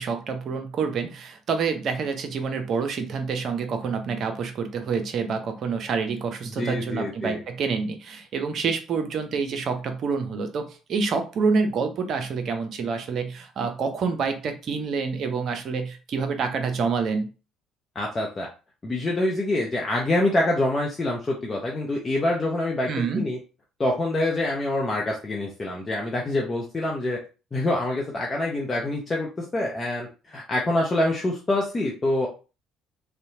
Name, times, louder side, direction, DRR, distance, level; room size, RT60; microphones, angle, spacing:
voice 1, 0.0-17.3 22.9-23.2, right 5 dB, 55° right, 6 dB, 0.5 m, -27 dB
voice 2, 6.4-7.4 17.9-18.5 18.8-23.4 23.8-27.2 27.5-32.3, left 1 dB, 30° left, -1 dB, 0.6 m, -26 dB
2.7 x 2.1 x 2.7 m, 0.33 s
hypercardioid pair, 55°, 0 cm